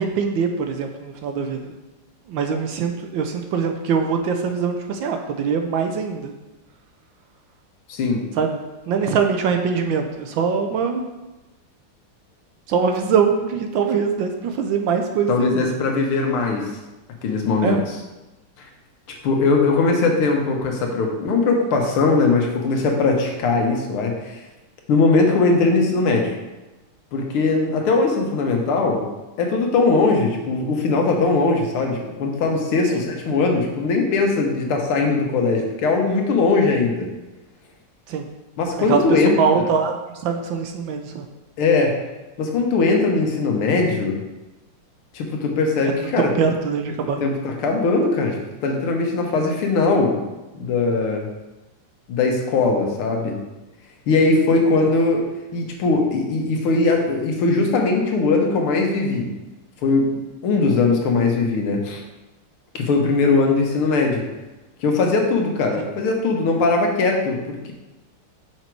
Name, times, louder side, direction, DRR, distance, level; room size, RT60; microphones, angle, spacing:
voice 1, 0.0-1.7 2.3-6.3 8.3-11.1 12.7-15.7 17.6-17.8 32.9-33.0 38.1-38.3 38.9-41.2 45.8-47.2 65.8-65.9, right 6 dB, 75° right, 5 dB, 1.3 m, -23 dB
voice 2, 7.9-8.2 15.3-16.7 17.2-17.8 18.6-18.7 19.2-24.4 24.9-26.4 27.1-29.0 29.4-37.1 38.6-39.4 41.6-41.9 42.4-44.2 45.1-46.3 47.2-50.2 50.5-51.3 52.1-53.4 54.1-55.3 55.5-59.3 59.8-60.1 60.4-62.0 62.7-64.2 64.8-67.7, left 3 dB, 80° left, 1 dB, 2.0 m, -20 dB
6.0 x 5.8 x 4.5 m, 1.1 s
omnidirectional pair, 2.4 m